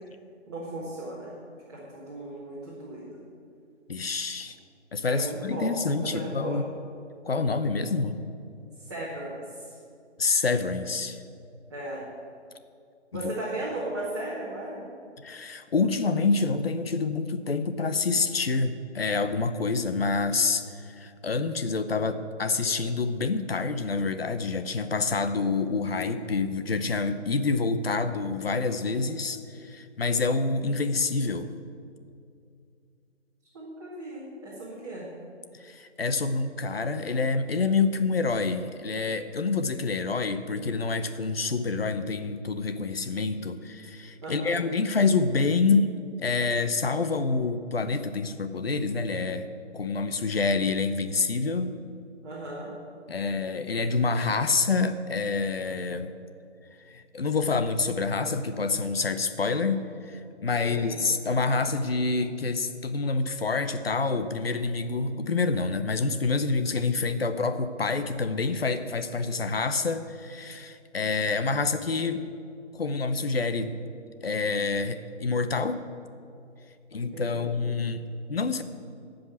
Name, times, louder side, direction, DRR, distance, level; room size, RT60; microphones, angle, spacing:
voice 1, 0.5-1.3 1.7-3.2 5.1-5.7 6.0-6.6 8.9-9.7 11.7-12.0 13.1-14.8 33.5-35.1 44.2-44.6 52.2-52.7 60.6-61.1 77.1-77.5, right 1 dB, 20° right, -9 dB, 1.9 m, -36 dB
voice 2, 3.9-4.6 4.9-6.6 7.2-8.2 10.2-11.2 15.2-31.5 35.6-49.5 49.7-51.7 53.1-56.1 56.9-72.3 72.7-73.8 74.2-75.8 76.9-78.6, left 4 dB, 55° left, 9 dB, 0.8 m, -27 dB
14.0 x 5.3 x 8.2 m, 2.5 s
figure-of-eight pair, 170°, 36 cm